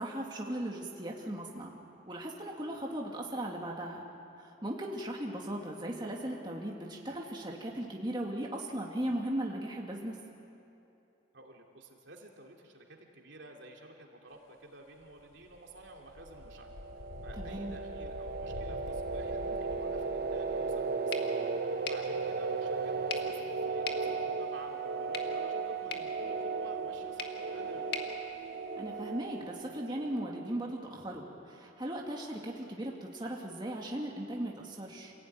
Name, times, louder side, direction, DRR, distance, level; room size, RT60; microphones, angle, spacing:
voice 1, 0.0-1.8 2.0-4.1 4.4-10.2 17.4-17.8 28.8-35.1, right 1 dB, 20° right, -1 dB, 2.2 m, -37 dB
voice 2, 11.3-16.7 17.2-28.1, right 1 dB, 65° right, 1 dB, 2.9 m, -52 dB
sound 1, 15.0-21.0 21.5-21.6, left 2 dB, 80° left, 0.8 m, -47 dB
sound 2, 16.3-30.8, right 4 dB, 50° right, 1.1 m, -36 dB
sound 3, 21.1-29.2, left 5 dB, 50° left, 1.8 m, -45 dB
28.0 x 16.5 x 9.5 m, 2.7 s
head